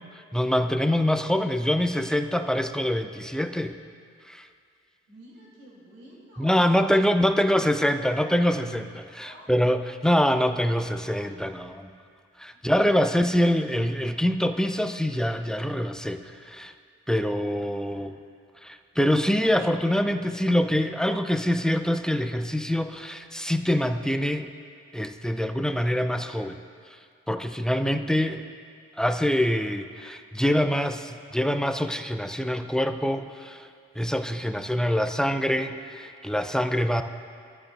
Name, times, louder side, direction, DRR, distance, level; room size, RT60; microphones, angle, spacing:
voice 1, 0.3-3.8 4.3-4.5 6.4-11.9 12.4-16.7 17.1-18.1 18.6-24.5 24.9-26.6 27.3-28.4 29.0-33.7 34.0-37.0, equal, ahead, 8 dB, 0.7 m, -25 dB
voice 2, 5.1-7.7 9.2-9.5 10.2-10.3 17.9-18.1 34.4-34.9, equal, 70° right, -4 dB, 3.5 m, -50 dB
19.0 x 14.0 x 2.7 m, 2.2 s
figure-of-eight pair, 45°, 36 cm